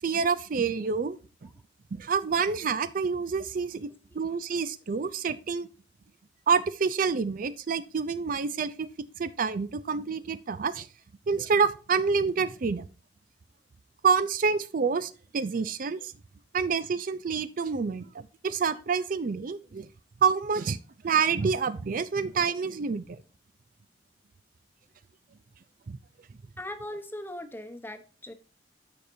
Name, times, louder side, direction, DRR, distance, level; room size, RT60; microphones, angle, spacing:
voice 1, 0.0-1.5 1.9-5.7 6.5-8.9 9.2-10.9 11.3-12.9 14.0-16.1 16.5-19.9 20.2-23.2 25.9-26.0, right 5 dB, 50° right, 0.4 m, -28 dB
voice 2, 26.6-28.3, left 1 dB, 10° left, 0.9 m, -39 dB
13.0 x 5.1 x 2.7 m
head